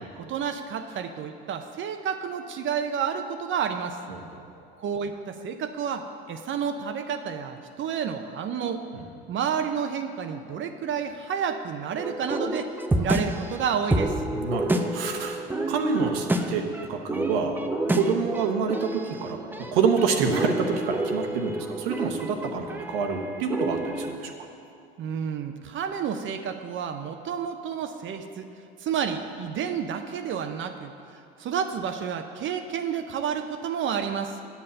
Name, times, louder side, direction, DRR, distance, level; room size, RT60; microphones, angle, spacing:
voice 1, 0.3-4.0 4.8-8.8 9.3-14.2 25.0-28.5 28.8-34.4, right 7 dB, 40° right, 7 dB, 0.7 m, -30 dB
sound 1, 12.0-24.1, right 1 dB, 5° right, 0.6 m, -29 dB
voice 2, 14.3-16.6 16.9-17.6 17.9-19.4 19.7-24.3, right 5 dB, 75° right, 3 dB, 1.1 m, -27 dB
9.3 x 5.7 x 6.5 m, 2.6 s
hypercardioid pair, 80°, 29 cm